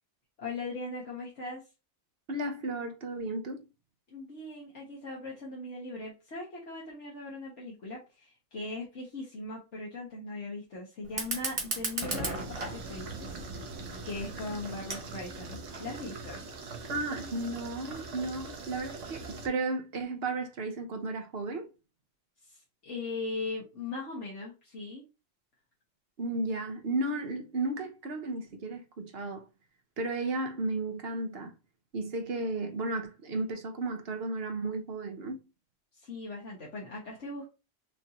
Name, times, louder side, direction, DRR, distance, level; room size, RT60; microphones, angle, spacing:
voice 1, 0.4-1.6 4.1-13.4 14.0-16.4 22.4-25.0 35.9-37.5, left 2 dB, 75° left, 1.7 m, -39 dB
voice 2, 2.3-3.6 16.9-21.7 26.2-29.4 30.0-31.5 31.9-35.4, right 2 dB, 55° right, 1.1 m, -34 dB
Fire, 11.0-16.0, right 2 dB, 30° right, 1.0 m, -37 dB
sound 1, 12.3-19.5, right 3 dB, 80° right, 1.3 m, -43 dB
6.0 x 2.7 x 2.9 m
omnidirectional pair, 1.2 m